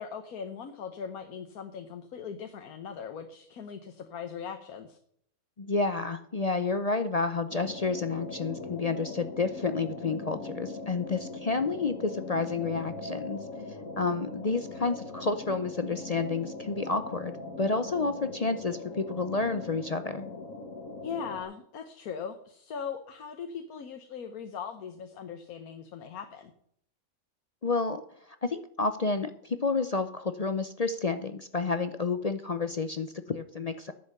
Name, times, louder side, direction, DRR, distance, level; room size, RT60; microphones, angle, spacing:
voice 1, 0.0-5.0 21.0-26.5, left 7 dB, 90° left, 7 dB, 1.5 m, -39 dB
voice 2, 5.6-13.4 14.0-20.3 27.6-28.0 28.4-33.9, left 4 dB, 45° left, 10 dB, 0.5 m, -30 dB
sound 1, 7.5-21.4, left 3 dB, 65° left, 1.8 m, -41 dB
10.5 x 7.7 x 6.5 m, 0.69 s
omnidirectional pair, 1.5 m